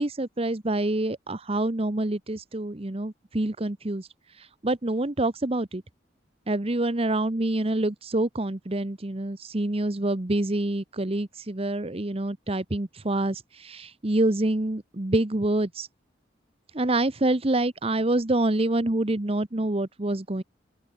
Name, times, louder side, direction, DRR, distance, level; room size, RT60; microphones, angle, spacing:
voice 1, 0.0-4.1 4.3-5.8 6.5-15.9 16.7-20.4, right 1 dB, 30° right, 1.0 m, -26 dB
open air
head